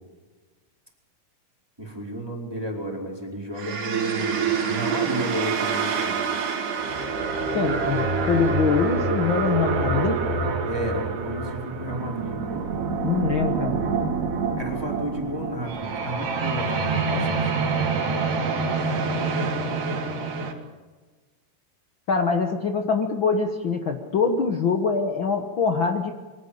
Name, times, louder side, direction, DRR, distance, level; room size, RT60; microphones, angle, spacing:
voice 1, 1.8-6.1 10.6-12.7 14.6-17.6 18.0-18.5, equal, 5° right, -1 dB, 4.1 m, -32 dB
sound 1, 3.6-20.5, right 4 dB, 85° right, 4.7 m, -26 dB
voice 2, 7.5-10.2 13.0-13.8 22.1-26.1, left 5 dB, 90° left, 4 dB, 1.0 m, -24 dB
24.0 x 17.5 x 8.6 m, 1.3 s
omnidirectional pair, 4.5 m